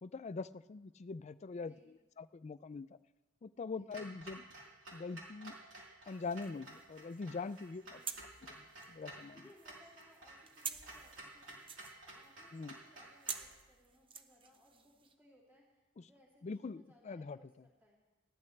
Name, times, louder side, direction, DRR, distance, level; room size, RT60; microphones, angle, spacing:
voice 1, 0.0-2.9 3.4-4.5 4.9-5.5 6.1-8.0 8.6-9.4 12.5-12.7 16.0-16.1 16.4-17.4, left 4 dB, 35° left, 15 dB, 0.4 m, -43 dB
voice 2, 1.6-1.9 3.6-3.9 7.8-8.2 9.3-11.7 12.1-18.0, left 1 dB, 10° right, -4 dB, 3.0 m, -66 dB
Clock, 3.9-13.5, right 2 dB, 70° right, 3.8 m, -53 dB
sound 1, 6.1-15.1, right 6 dB, 25° right, 0.7 m, -50 dB
20.0 x 14.5 x 3.3 m, 1.1 s
head